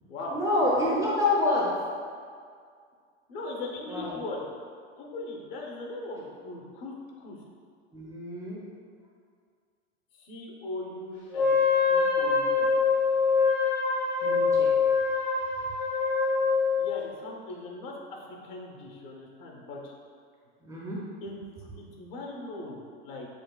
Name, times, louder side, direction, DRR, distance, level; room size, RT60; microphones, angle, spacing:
voice 1, 0.3-1.7 3.9-4.1 7.9-8.6 14.2-14.7 20.6-21.0, left 2 dB, 10° right, -6 dB, 0.4 m, -27 dB
voice 2, 3.3-4.5 4.9-7.4 10.1-11.5 11.9-12.7 16.8-19.9 21.2-23.3, left 2 dB, 60° left, -1 dB, 0.9 m, -39 dB
Wind instrument woodwind instrument, 11.3-16.9, left 5 dB, 90° left, 0.9 m, -24 dB
6.4 x 2.3 x 2.3 m, 2.1 s
hypercardioid pair, 110°, 33 cm